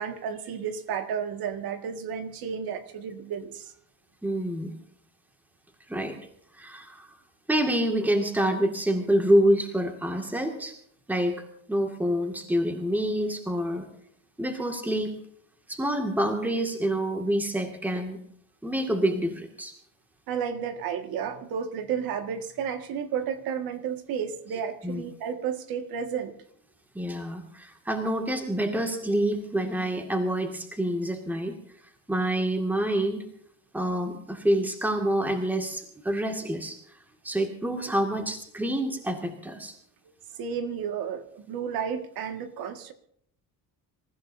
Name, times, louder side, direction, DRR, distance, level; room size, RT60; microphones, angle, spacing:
voice 1, 0.0-3.7 20.3-26.3 40.3-42.9, right 7 dB, 75° right, 6 dB, 2.0 m, -32 dB
voice 2, 4.2-4.7 5.9-6.2 6.6-7.1 7.5-10.7 11.1-13.9 14.4-15.2 15.7-18.2 18.6-19.7 24.8-25.0 26.9-31.5 32.1-33.2 33.7-36.8 37.2-39.7, right 1 dB, 5° right, 3 dB, 2.1 m, -27 dB
27.5 x 15.0 x 2.7 m, 0.67 s
cardioid pair, 130°, 36 cm